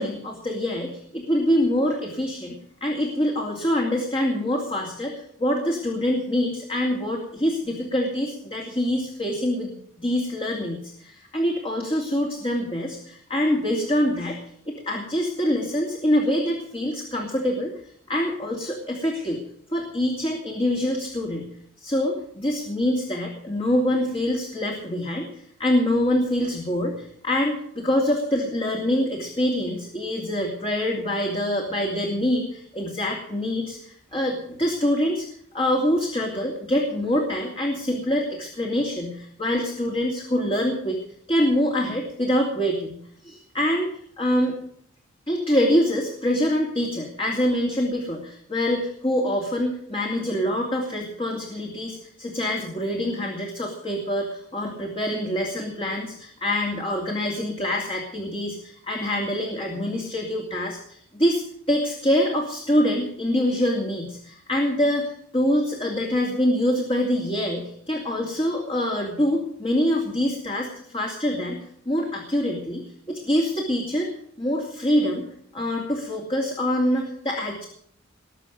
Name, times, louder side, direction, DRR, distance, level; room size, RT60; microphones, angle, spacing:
voice 1, 0.0-14.4 14.7-17.7 18.1-19.4 19.7-21.5 21.8-35.3 35.5-41.0 41.3-43.9 44.2-44.5 45.3-70.7 70.9-71.6 71.9-74.1 74.4-75.2 75.5-77.7, left 1 dB, 25° left, 0 dB, 2.7 m, -25 dB
20.5 x 6.8 x 9.3 m, 0.66 s
head